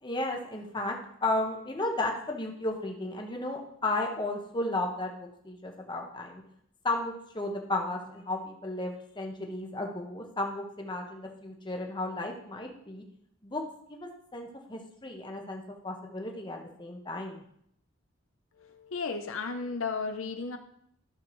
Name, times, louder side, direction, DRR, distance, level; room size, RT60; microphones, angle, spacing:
voice 1, 0.0-6.4 6.8-13.0 13.4-13.6 13.9-17.4, left 2 dB, 20° left, 2 dB, 1.1 m, -34 dB
voice 2, 18.6-20.6, left 4 dB, 75° left, 6 dB, 0.7 m, -34 dB
13.0 x 6.8 x 3.2 m, 0.69 s
head